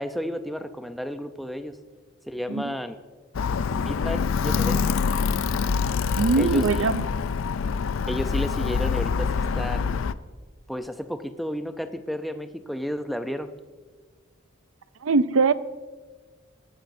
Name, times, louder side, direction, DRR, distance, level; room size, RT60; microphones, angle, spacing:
voice 1, 0.0-1.8 2.3-3.0 3.7-4.9 6.4-6.9 8.1-10.0 10.7-13.5, equal, ahead, 8 dB, 0.5 m, -32 dB
Alarm, 3.3-10.1, left 5 dB, 80° left, 0.4 m, -25 dB
voice 2, 6.2-7.0 15.0-15.5, right 4 dB, 80° right, 15 dB, 0.5 m, -21 dB
19.5 x 13.5 x 2.7 m, 1.4 s
head